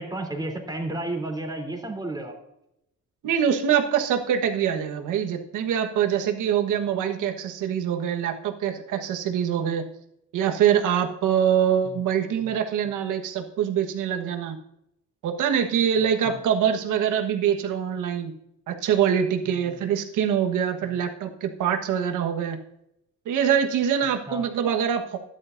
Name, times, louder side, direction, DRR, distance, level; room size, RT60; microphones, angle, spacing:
voice 1, 0.0-2.3 11.8-12.0 16.2-16.4 19.4-19.8 20.8-21.0 24.3-24.4, right 2 dB, 15° right, 2 dB, 3.3 m, -32 dB
voice 2, 3.2-9.9 10.3-14.6 15.2-18.3 18.7-22.6 23.2-25.2, right 8 dB, 85° right, 5 dB, 1.4 m, -24 dB
13.0 x 11.0 x 2.6 m, 0.80 s
cardioid pair, 90°, 30 cm